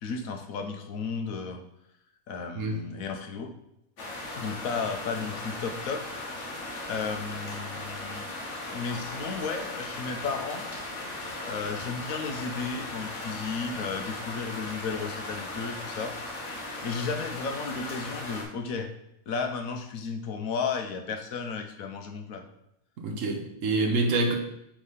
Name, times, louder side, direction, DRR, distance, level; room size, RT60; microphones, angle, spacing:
voice 1, 0.0-1.6 2.3-3.5 4.4-6.1 6.9-8.3 8.7-10.7 11.5-16.2 16.8-18.9 19.3-22.4, left 5 dB, 75° left, 5 dB, 1.2 m, -33 dB
sound 1, 4.0-18.4, left 2 dB, 60° left, 1.4 m, -37 dB
voice 2, 23.0-24.3, right 2 dB, 70° right, 3 dB, 1.2 m, -26 dB
4.9 x 3.6 x 5.5 m, 0.80 s
omnidirectional pair, 1.5 m